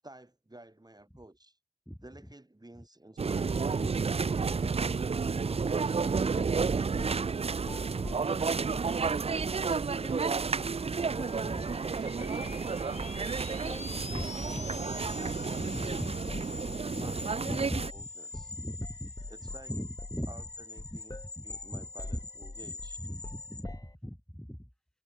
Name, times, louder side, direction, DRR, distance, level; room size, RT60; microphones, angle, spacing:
voice 1, 0.0-1.6 2.0-5.0 5.5-8.8 9.6-10.5 11.1-14.2 14.9-15.9 16.2-16.5 17.0-18.5 19.3-19.7 20.3-21.1 21.4-23.0, right 1 dB, 30° right, 2.5 m, -52 dB
sound 1, 3.2-17.9, right 5 dB, 55° right, 0.4 m, -31 dB
voice 2, 4.6-4.9 11.4-11.6 14.1-14.7 15.6-16.2 16.9-19.1 19.7-20.4 20.9-21.0 21.4-21.5 21.7-21.9 22.6-22.7 23.0-24.7, equal, 5° left, 1.9 m, -40 dB
sound 2, 5.6-6.6 7.0-7.3 7.6-9.0 9.4-9.6 10.0-10.2 10.6-10.8 11.2-11.4 11.7-16.9 17.3-17.5 17.8-18.1 18.3-18.6 18.8-24.0, left 2 dB, 30° left, 1.1 m, -45 dB
sound 3, 10.7-23.6, left 3 dB, 65° left, 1.2 m, -45 dB
wide cardioid pair, 45°, 13 cm